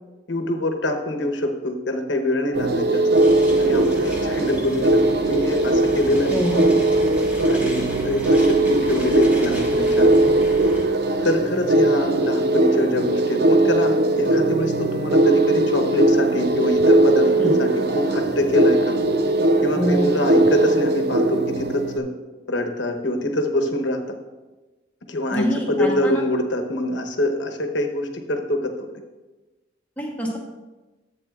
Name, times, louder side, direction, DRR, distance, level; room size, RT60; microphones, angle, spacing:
voice 1, 0.3-3.0 3.6-6.4 7.5-10.3 11.2-19.0 19.6-22.1 22.5-24.0 25.1-28.9, left 1 dB, 75° left, 5 dB, 1.0 m, -24 dB
sound 1, 2.5-22.0, right 2 dB, 55° right, 0.5 m, -19 dB
sound 2, 3.1-10.9, equal, 10° right, 1.0 m, -35 dB
voice 2, 6.3-6.6 17.4-17.5 19.8-20.1 25.3-26.2 30.0-30.4, equal, 10° left, -1 dB, 1.0 m, -24 dB
10.5 x 8.4 x 2.4 m, 1.2 s
head